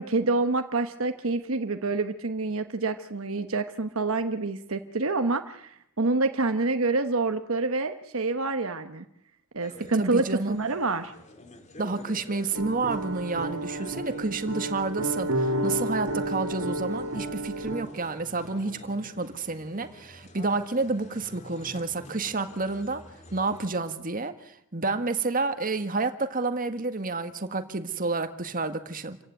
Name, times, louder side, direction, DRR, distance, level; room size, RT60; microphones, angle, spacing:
voice 1, 0.0-9.1 9.5-11.1, right 3 dB, 65° right, 8 dB, 1.2 m, -27 dB
sound 1, 9.6-23.7, left 1 dB, 30° left, 2.6 m, -48 dB
voice 2, 10.0-10.6 11.8-23.0 23.3-29.2, right 3 dB, 40° right, 8 dB, 1.7 m, -30 dB
sound 2, 12.5-17.8, right 1 dB, 85° right, 2.8 m, -31 dB
28.5 x 15.5 x 9.3 m, 0.76 s
head